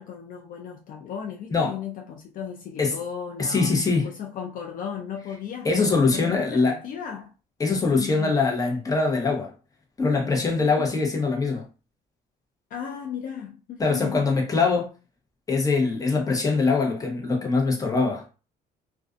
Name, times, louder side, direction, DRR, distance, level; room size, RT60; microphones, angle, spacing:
voice 1, 0.0-3.8 4.0-7.3 8.0-8.3 10.6-10.7 12.7-14.2, left 8 dB, 55° left, 0.4 m, -36 dB
voice 2, 3.4-4.1 5.6-6.8 7.6-9.5 10.0-11.6 13.8-14.9 15.5-18.2, left 4 dB, 20° left, 0.8 m, -23 dB
2.4 x 2.2 x 2.4 m
cardioid pair, 110°, 17 cm